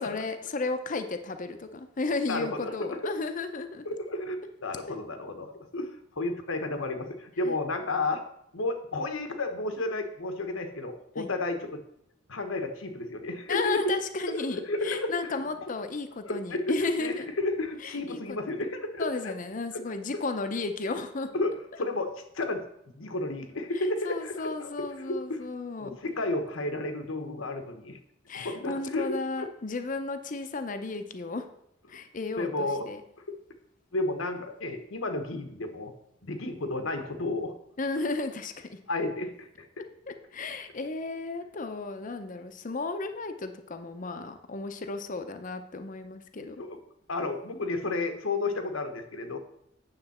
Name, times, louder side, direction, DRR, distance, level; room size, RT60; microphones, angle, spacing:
voice 1, 0.0-3.8 7.4-7.5 11.2-11.3 13.5-17.3 17.8-18.4 19.0-21.3 23.7-26.0 28.3-31.5 31.9-33.0 37.8-38.8 40.1-46.6, left 3 dB, 40° left, 8 dB, 0.6 m, -34 dB
voice 2, 2.3-3.0 3.8-4.4 4.6-5.9 6.2-8.2 8.5-11.8 12.3-14.0 14.3-15.4 16.2-19.3 19.9-20.0 21.3-22.6 22.9-25.5 25.8-28.0 28.3-29.5 32.4-32.8 33.3-33.4 33.9-35.9 36.2-37.5 38.2-38.3 38.9-39.7 46.6-46.8 47.1-49.4, left 2 dB, 85° left, 6 dB, 1.2 m, -32 dB
9.0 x 6.8 x 4.3 m, 0.76 s
head